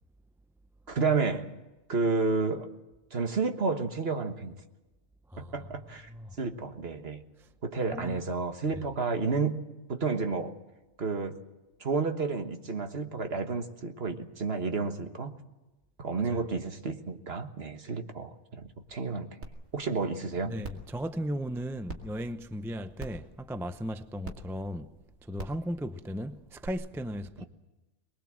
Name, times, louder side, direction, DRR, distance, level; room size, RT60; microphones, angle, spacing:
voice 1, 0.9-1.5 1.9-2.7 3.1-4.5 5.4-6.1 6.4-7.2 7.6-9.6 9.9-10.5 11.0-11.4 11.8-15.3 16.0-19.3 19.7-20.5 27.4-27.5, right 4 dB, 45° right, 1.6 m, -31 dB
voice 2, 7.9-8.2 16.2-16.4 20.4-24.9 25.3-27.4, equal, 5° right, 0.5 m, -36 dB
sound 1, 19.4-19.5 20.0-20.1 20.6-20.9 21.9-22.0 23.0-23.3 24.2-24.3 25.3-25.6 26.6-26.7, right 3 dB, 70° right, 2.7 m, -39 dB
23.5 x 21.0 x 7.6 m
omnidirectional pair, 1.4 m